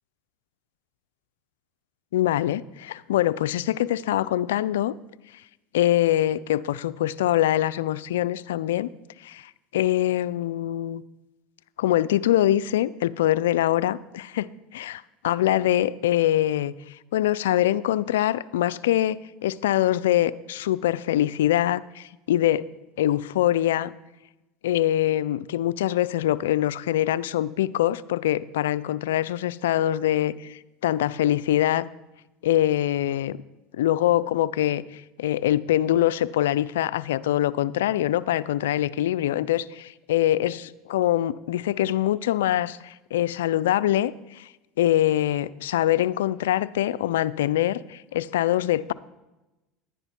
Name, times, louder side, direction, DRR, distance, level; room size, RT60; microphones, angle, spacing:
voice 1, 2.1-4.9 5.7-8.9 9.2-11.0 11.8-22.7 23.0-23.9 24.6-31.9 32.4-33.4 33.8-44.5 44.8-48.9, left 13 dB, 85° left, 16 dB, 0.3 m, -24 dB
11.0 x 9.8 x 4.3 m, 1.0 s
supercardioid pair, 95°, 0 cm